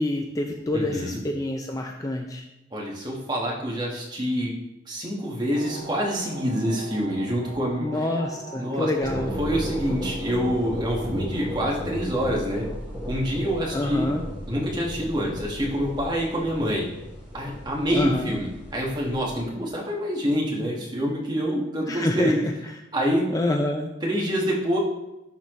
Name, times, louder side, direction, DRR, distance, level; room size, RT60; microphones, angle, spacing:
voice 1, 0.0-2.4 7.8-9.4 13.7-14.2 17.9-18.3 21.9-22.3 23.3-23.9, left 1 dB, 20° left, 3 dB, 0.4 m, -27 dB
voice 2, 0.7-1.2 2.7-4.5 4.9-7.9 8.6-8.9 9.4-12.6 13.0-14.1 14.5-16.9 17.3-22.4 22.9-23.2 24.0-24.8, equal, 25° right, -3 dB, 1.5 m, -26 dB
sound 1, 5.5-16.5 16.8-17.1, right 3 dB, 90° right, 0.8 m, -44 dB
sound 2, 9.0-19.4, equal, 5° right, 2.4 m, -35 dB
11.0 x 4.2 x 3.1 m, 0.93 s
head